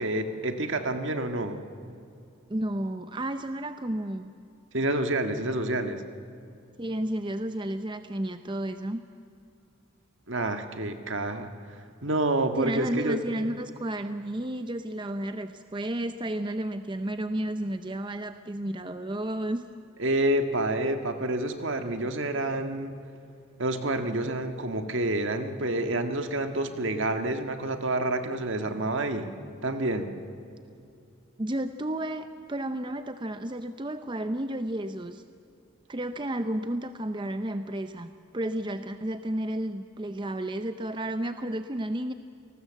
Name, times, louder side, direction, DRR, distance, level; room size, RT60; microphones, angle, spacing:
voice 1, 0.0-1.6 4.7-6.0 10.3-11.5 12.0-13.2 20.0-22.9 23.6-29.3 29.6-30.1, right 1 dB, 65° right, 7 dB, 1.7 m, -28 dB
voice 2, 2.5-4.3 6.8-9.0 12.6-19.7 31.4-35.2 35.9-42.1, right 1 dB, 25° right, 9 dB, 0.6 m, -32 dB
28.5 x 19.5 x 7.6 m, 2.6 s
head